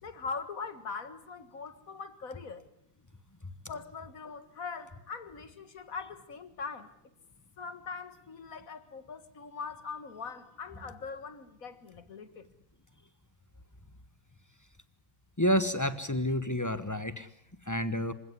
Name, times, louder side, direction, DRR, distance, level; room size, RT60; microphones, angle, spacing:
voice 1, 0.0-2.7 3.7-6.9 7.6-12.5, left 5 dB, 45° left, 12 dB, 2.0 m, -41 dB
voice 2, 15.4-17.3 17.6-18.1, equal, 15° left, 13 dB, 0.6 m, -29 dB
26.5 x 16.5 x 9.7 m, 0.74 s
omnidirectional pair, 2.1 m